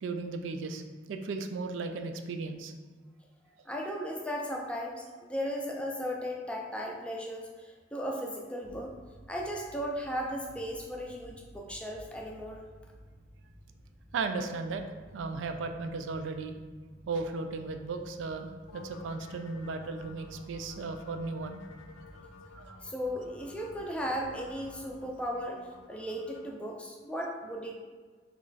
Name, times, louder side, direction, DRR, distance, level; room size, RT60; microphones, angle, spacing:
voice 1, 0.0-0.8 1.1-2.7 14.1-14.8 15.1-16.6 17.1-21.7 22.6-22.8, right 3 dB, 85° right, 6 dB, 0.3 m, -36 dB
voice 2, 3.4-8.9 9.3-12.6 22.8-27.7, equal, 5° left, 0 dB, 0.3 m, -36 dB
sound 1, 8.6-24.9, right 1 dB, 65° right, 0.8 m, -54 dB
sound 2, 18.7-26.5, left 4 dB, 90° left, 0.3 m, -53 dB
3.1 x 2.3 x 3.9 m, 1.5 s
head